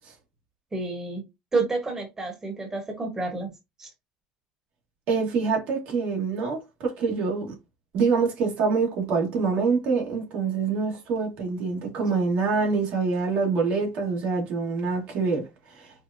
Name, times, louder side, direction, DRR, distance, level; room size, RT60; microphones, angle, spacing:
voice 1, 0.7-1.2 1.5-3.5 3.8-3.9, right 3 dB, 20° right, 1.3 m, -29 dB
voice 2, 5.1-7.5 7.9-15.4, right 4 dB, 65° right, 1.7 m, -25 dB
4.6 x 2.2 x 2.6 m
supercardioid pair, 100°, 3 cm